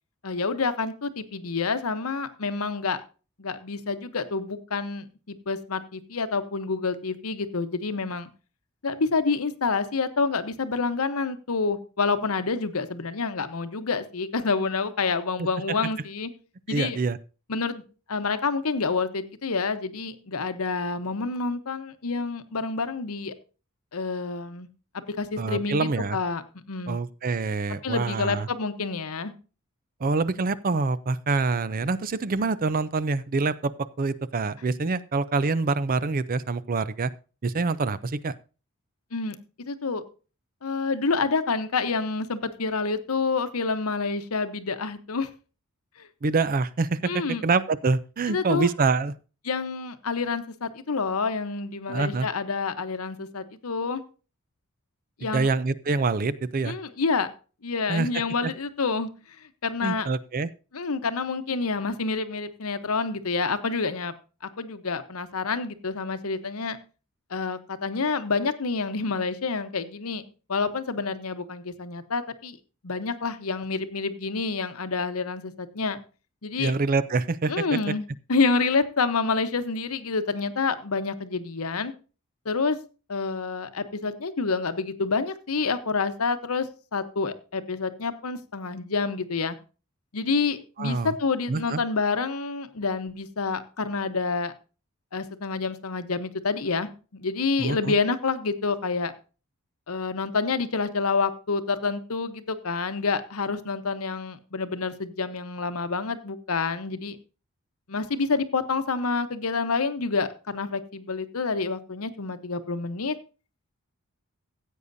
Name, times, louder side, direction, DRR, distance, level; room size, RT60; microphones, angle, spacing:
voice 1, 0.2-3.0 3.4-8.3 8.8-16.3 16.7-17.0 17.5-17.8 18.1-23.3 23.9-24.7 24.9-26.4 26.7-27.0 27.8-29.3 39.1-40.0 40.6-45.3 46.0-46.1 47.1-47.4 48.3-48.7 49.4-54.0 55.2-55.5 56.6-57.3 57.6-59.1 59.6-60.1 60.7-64.1 64.6-66.8 67.3-70.2 70.5-72.6 72.8-76.0 76.4-76.7 77.5-81.9 82.4-82.8 83.1-89.6 90.1-94.5 95.1-99.1 99.9-107.2 107.9-113.2, left 4 dB, 75° left, 11 dB, 0.9 m, -28 dB
voice 2, 16.7-17.2 25.4-26.2 26.9-28.5 30.0-33.7 34.0-37.1 37.4-38.3 46.2-49.1 51.9-52.3 55.3-56.8 57.9-58.1 58.4-58.5 59.8-60.5 76.6-77.9 90.8-91.2 91.5-91.8 97.6-97.9, right 4 dB, 40° right, 16 dB, 0.5 m, -26 dB
16.0 x 8.4 x 2.6 m, 0.34 s
head